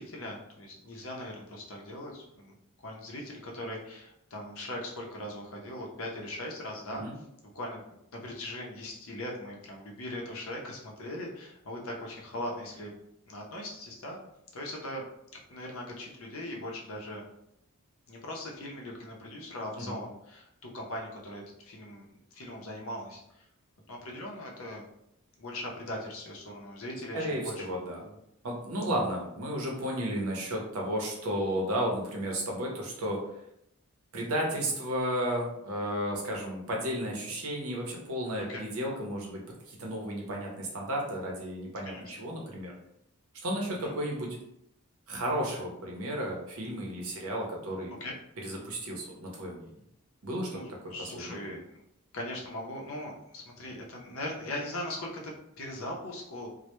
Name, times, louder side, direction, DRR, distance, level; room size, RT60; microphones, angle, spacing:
voice 1, 0.0-2.5 2.8-7.0 7.5-7.8 8.1-13.0 13.3-14.2 14.5-15.1 15.5-17.2 18.1-22.0 22.3-23.2 23.9-24.8 25.4-27.7 28.0-28.1 28.9-29.0 38.5-38.6 41.8-42.0 43.8-43.9 48.0-48.2 50.5-51.6 52.1-56.5, left 1 dB, 65° left, -1 dB, 0.6 m, -40 dB
voice 2, 27.1-28.0 28.4-33.2 34.1-39.4 39.7-42.7 43.4-44.4 45.1-47.9 48.4-49.7 50.2-51.5, equal, 75° right, -1 dB, 0.7 m, -33 dB
2.1 x 2.1 x 2.9 m, 0.78 s
head